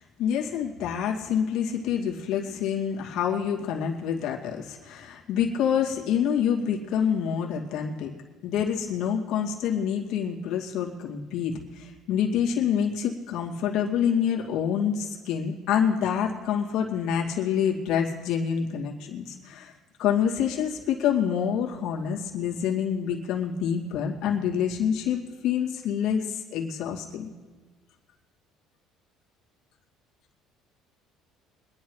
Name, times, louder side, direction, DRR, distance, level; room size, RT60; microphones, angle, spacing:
voice 1, 0.2-8.1 8.4-19.7 20.0-27.3, left 8 dB, 65° left, -3 dB, 2.3 m, -27 dB
24.5 x 10.5 x 3.2 m, 1.4 s
cardioid pair, 125°, 0 cm